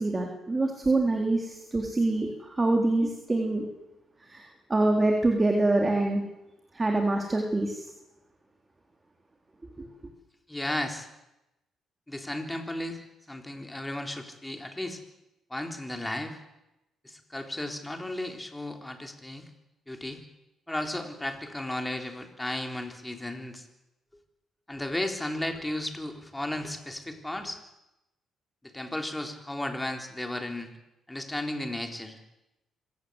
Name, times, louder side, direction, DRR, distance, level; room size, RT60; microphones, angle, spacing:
voice 1, 0.0-3.6 4.3-6.2 6.7-7.8 9.8-9.9, right 2 dB, 20° right, 2 dB, 3.6 m, -25 dB
voice 2, 10.5-11.1 12.1-13.0 13.3-15.0 15.5-16.4 17.0-19.5 19.9-20.2 20.7-23.6 24.7-27.6 28.6-30.7 31.1-32.2, left 1 dB, 10° left, 4 dB, 3.9 m, -34 dB
26.0 x 17.0 x 8.1 m, 0.94 s
cardioid pair, 90°, 0 cm